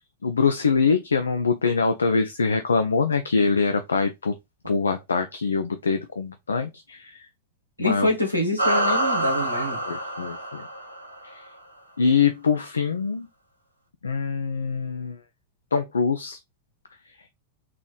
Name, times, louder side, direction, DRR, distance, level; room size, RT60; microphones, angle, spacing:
voice 1, 0.2-4.3 4.7-7.2 7.8-8.1 9.8-10.6 11.2-11.4 12.0-13.3 14.0-15.2 15.7-16.4, left 5 dB, 75° left, 0.3 m, -24 dB
voice 2, 7.8-9.8, left 1 dB, 90° left, 1.2 m, -25 dB
sound 1, 8.6-11.3, right 1 dB, 90° right, 0.7 m, -26 dB
3.8 x 2.9 x 2.3 m
figure-of-eight pair, 90°, 0 cm